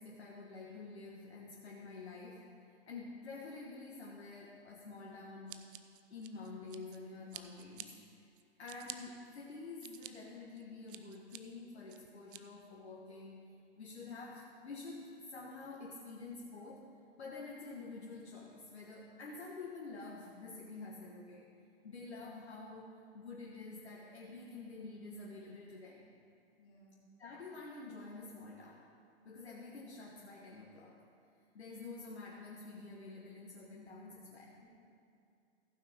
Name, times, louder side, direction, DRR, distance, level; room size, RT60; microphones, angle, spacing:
voice 1, 0.0-5.7 6.1-8.1 8.6-13.4 13.8-16.9 17.2-21.5 21.8-26.1 27.2-28.9 29.2-31.0 31.5-34.5, left 3 dB, 80° left, -3 dB, 1.6 m, -48 dB
Scissors, 5.5-7.0 7.3-7.9 8.4-9.0 9.5-10.1 10.6-11.4 11.9-12.4, right 12 dB, 55° right, 0.7 m, -49 dB
voice 2, 8.6-8.9 26.6-27.0 34.6-34.7, equal, 30° left, -6 dB, 3.2 m, -65 dB
15.5 x 9.1 x 3.6 m, 2.5 s
figure-of-eight pair, 110°, 32 cm